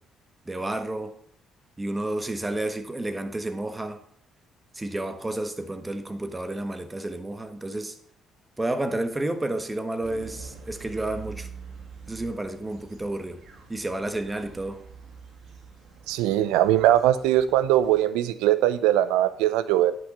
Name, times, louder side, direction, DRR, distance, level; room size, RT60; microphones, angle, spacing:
voice 1, 0.4-1.2 1.8-4.0 4.7-8.0 8.6-11.5 12.1-13.4 13.7-14.8, right 1 dB, 20° right, 1.4 m, -31 dB
sound 1, 10.0-18.0, right 5 dB, 65° right, 2.1 m, -45 dB
voice 2, 16.1-19.9, right 13 dB, 80° right, 0.6 m, -21 dB
9.7 x 6.2 x 5.4 m
hypercardioid pair, 50°, 0 cm